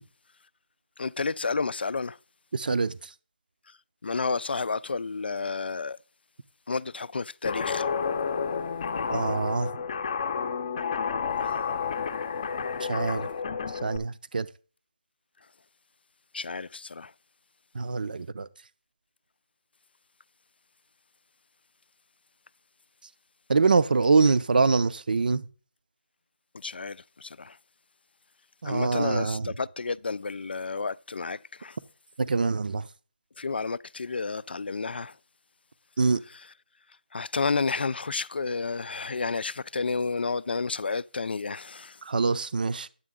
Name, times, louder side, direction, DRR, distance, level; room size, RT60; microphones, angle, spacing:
voice 1, 1.0-2.1 4.0-6.0 6.7-7.9 16.3-17.1 26.6-27.0 27.2-27.5 28.6-31.7 33.4-35.1 37.1-41.9, left 4 dB, 75° left, 0.3 m, -31 dB
voice 2, 2.5-3.0 9.1-9.7 12.9-13.3 13.8-14.5 17.7-18.5 23.5-25.4 28.6-29.5 32.2-32.9 36.0-36.2 42.0-42.9, right 4 dB, 60° right, 0.5 m, -24 dB
Guitar, 7.4-14.0, left 6 dB, 35° left, 0.7 m, -30 dB
9.7 x 7.4 x 3.6 m
figure-of-eight pair, 165°, 5 cm